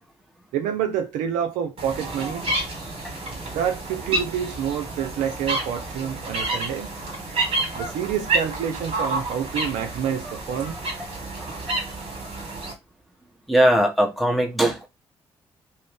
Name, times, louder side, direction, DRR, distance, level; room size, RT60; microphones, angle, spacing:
voice 1, 0.5-2.5 3.5-6.9 7.7-10.8, right 8 dB, 70° right, 0.5 m, -28 dB
sound 1, 1.8-12.7, right 2 dB, 45° right, 1.3 m, -29 dB
voice 2, 13.5-14.9, right 1 dB, ahead, 1.0 m, -20 dB
2.5 x 2.0 x 3.3 m
hypercardioid pair, 45°, 14 cm